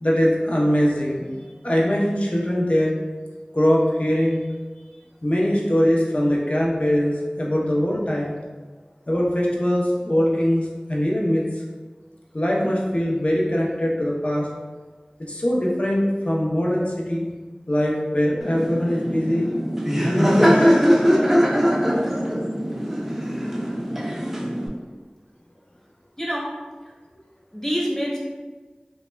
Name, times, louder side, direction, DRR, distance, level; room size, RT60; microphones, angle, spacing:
voice 1, 0.0-1.3 1.6-2.9 3.5-4.4 5.2-8.3 9.1-11.6 12.3-14.5 15.3-17.3 17.7-19.5 20.0-20.8, equal, 50° left, -3 dB, 0.5 m, -22 dB
Laughter, 18.4-24.7, equal, 10° right, 0.4 m, -21 dB
voice 2, 22.2-22.5 26.2-26.5 27.5-28.2, equal, 15° left, -5 dB, 0.7 m, -27 dB
2.1 x 2.1 x 3.2 m, 1.3 s
wide cardioid pair, 40°, 3 cm